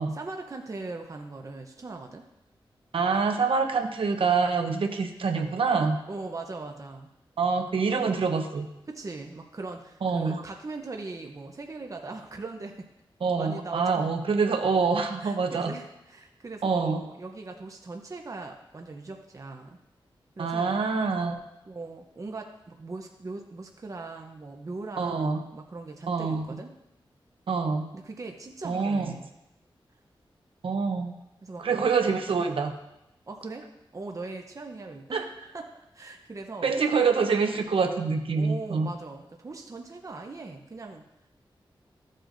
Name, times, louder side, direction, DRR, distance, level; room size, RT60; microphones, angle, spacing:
voice 1, 0.1-2.2 6.1-7.1 8.9-12.8 13.4-14.1 15.2-19.8 20.4-20.8 21.7-26.7 27.9-29.3 31.4-31.9 33.3-35.2 35.5-36.7 38.3-41.0, right 3 dB, 35° right, 3 dB, 0.8 m, -40 dB
voice 2, 2.9-6.0 7.4-8.7 10.0-10.4 13.2-15.7 16.6-17.0 20.4-21.3 25.0-25.4 26.1-26.4 27.5-27.9 28.6-29.1 30.6-31.1 31.6-32.7 35.1-35.2 36.6-38.9, right 5 dB, 80° right, 5 dB, 0.9 m, -26 dB
13.5 x 7.6 x 2.6 m, 0.89 s
wide cardioid pair, 100°, 9 cm